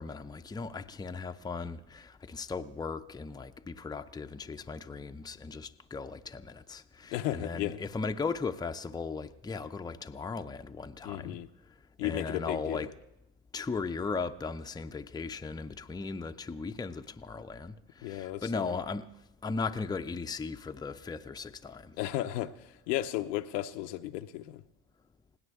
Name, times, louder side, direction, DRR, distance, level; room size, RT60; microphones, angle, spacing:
voice 1, 0.0-11.4 12.0-12.9 13.5-19.1 19.4-21.9, left 4 dB, 10° left, 0.5 m, -37 dB
voice 2, 7.1-7.8 11.0-11.5 12.0-12.9 18.0-18.8 22.0-24.6, left 14 dB, 90° left, 0.8 m, -34 dB
21.0 x 17.0 x 3.6 m
supercardioid pair, 80°, 48 cm